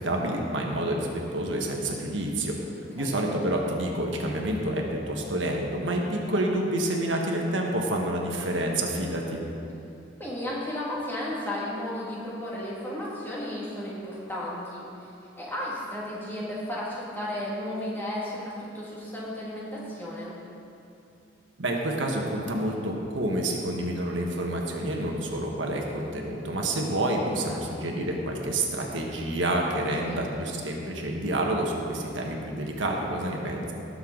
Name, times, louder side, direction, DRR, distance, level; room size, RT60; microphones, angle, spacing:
voice 1, 0.0-2.6 2.9-9.4 21.6-33.7, right 1 dB, 85° right, 0 dB, 1.4 m, -28 dB
voice 2, 10.2-14.9 15.4-20.3 27.5-27.6 30.0-30.3, left 1 dB, 10° left, -6 dB, 2.1 m, -34 dB
18.0 x 6.9 x 3.9 m, 2.7 s
head